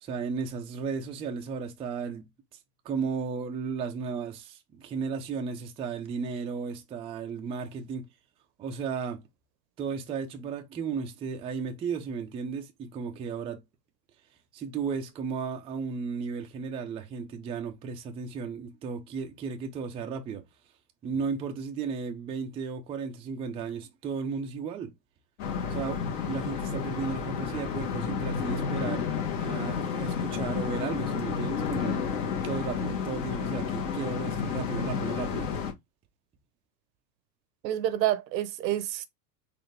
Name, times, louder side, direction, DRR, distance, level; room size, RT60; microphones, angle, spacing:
voice 1, 0.0-2.3 2.8-8.1 8.6-9.2 9.8-13.6 14.5-20.4 21.0-24.9 25.7-26.0 26.2-29.1 29.4-32.0 32.4-35.5, right 5 dB, 15° right, 0.3 m, -34 dB
sound 1, 25.4-35.7, left 6 dB, 60° left, 1.6 m, -31 dB
voice 2, 37.6-39.0, right 12 dB, 80° right, 0.8 m, -28 dB
4.1 x 2.6 x 3.2 m
supercardioid pair, 115°, 50 cm